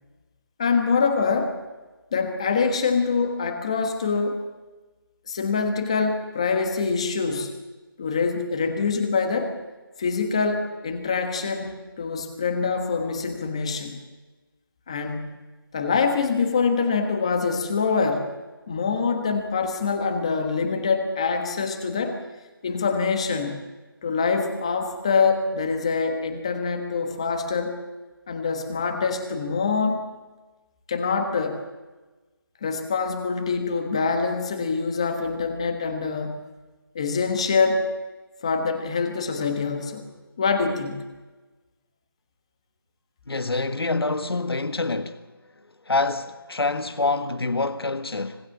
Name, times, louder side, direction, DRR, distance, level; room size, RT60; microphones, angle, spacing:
voice 1, 0.6-1.6 2.1-4.5 5.3-7.5 8.0-9.6 10.0-14.0 14.9-15.3 15.7-18.3 18.7-22.2 22.6-23.6 24.0-27.7 28.3-30.0 30.9-31.6 32.6-36.4 36.9-37.9 38.4-40.0 40.4-41.0, left 5 dB, 15° left, 1.4 m, -25 dB
voice 2, 43.3-45.2 45.9-48.4, left 3 dB, 80° left, 1.6 m, -26 dB
25.5 x 20.5 x 7.3 m
figure-of-eight pair, 180°, 13 cm